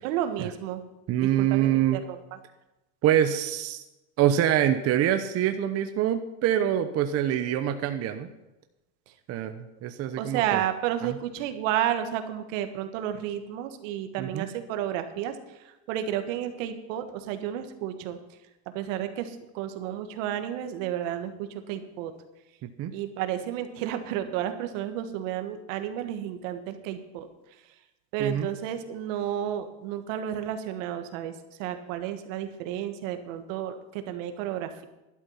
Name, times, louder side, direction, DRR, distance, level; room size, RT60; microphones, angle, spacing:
voice 1, 0.0-0.8 1.2-2.4 10.2-18.2 18.7-22.1 22.9-27.3 28.1-31.3 31.6-34.8, right 10 dB, 75° right, 8 dB, 1.7 m, -32 dB
voice 2, 1.1-2.0 3.0-3.8 4.2-8.3 9.3-10.6 11.0-11.1 14.2-14.5 22.6-22.9 28.2-28.5, right 11 dB, 40° right, 8 dB, 0.9 m, -25 dB
12.0 x 11.5 x 5.7 m, 0.99 s
cardioid pair, 145°, 39 cm